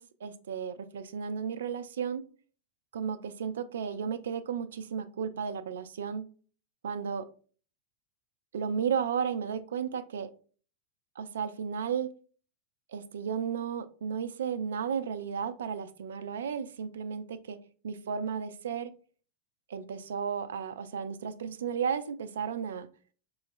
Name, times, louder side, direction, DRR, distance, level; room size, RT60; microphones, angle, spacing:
voice 1, 0.0-2.2 2.9-6.3 6.8-7.2 8.5-10.3 11.2-12.1 12.9-17.6 17.8-18.9 19.7-22.9, right 7 dB, 65° right, 12 dB, 0.3 m, -34 dB
3.9 x 3.1 x 2.4 m, 0.40 s
figure-of-eight pair, 90°, 0 cm